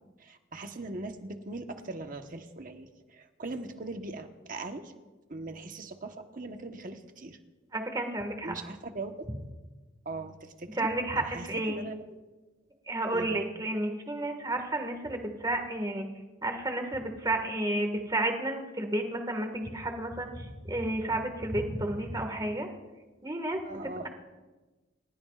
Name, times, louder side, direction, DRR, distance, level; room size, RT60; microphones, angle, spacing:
voice 1, 0.2-4.9 5.3-7.4 8.4-9.3 10.0-10.9 11.2-12.2 13.1-13.5 23.7-24.1, right 2 dB, 45° right, 5 dB, 1.2 m, -40 dB
voice 2, 7.7-8.5 10.8-11.8 12.9-16.1 16.4-22.7 23.2-24.1, right 1 dB, 20° right, 4 dB, 1.8 m, -31 dB
29.0 x 16.5 x 2.5 m, 1.2 s
head